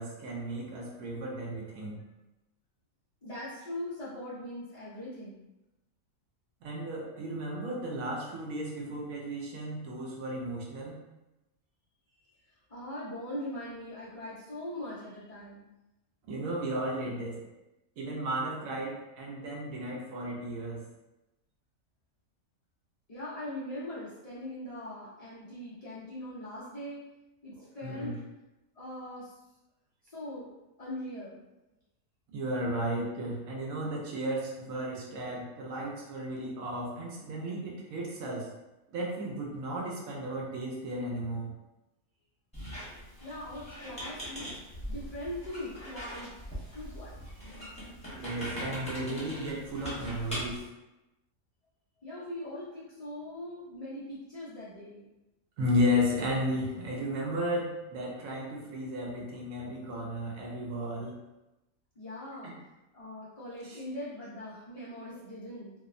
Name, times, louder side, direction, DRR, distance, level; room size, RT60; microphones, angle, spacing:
voice 1, 0.0-2.0 6.6-11.0 16.3-17.4 18.0-20.8 27.6-28.2 32.3-38.5 38.9-41.5 43.8-44.2 48.2-50.6 55.6-61.1 62.4-62.5 63.6-63.8, equal, 75° right, -2 dB, 1.0 m, -34 dB
voice 2, 3.2-5.4 12.4-15.7 23.1-27.0 27.4-28.2 28.7-29.4 30.0-30.5 30.8-31.4 43.2-44.6 44.9-46.3 46.7-47.5 52.0-55.1 62.0-62.5 62.9-65.7, left 1 dB, 60° left, -11 dB, 0.3 m, -41 dB
Squeak, 42.5-50.6, equal, 5° left, 0.6 m, -41 dB
2.7 x 2.0 x 2.4 m, 0.98 s
omnidirectional pair, 1.5 m